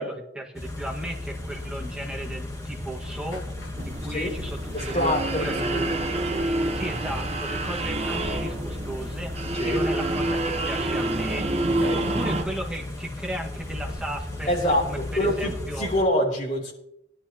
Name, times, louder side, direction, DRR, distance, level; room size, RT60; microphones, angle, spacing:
voice 1, 0.0-3.4 3.9-5.8 6.7-9.3 9.6-11.5 12.0-14.5 14.8-15.9, right 1 dB, 5° right, -1 dB, 1.7 m, -35 dB
Car / Idling, 0.6-16.0, left 1 dB, 20° left, 2.1 m, -35 dB
sound 1, 1.3-15.8, left 1 dB, 85° left, 1.7 m, -43 dB
sound 2, 3.8-12.4, right 2 dB, 35° right, 1.2 m, -28 dB
voice 2, 4.7-5.9 9.5-9.8 11.8-12.0 14.5-16.7, left 1 dB, 40° left, -2 dB, 3.3 m, -26 dB
17.0 x 11.5 x 3.0 m, 0.78 s
head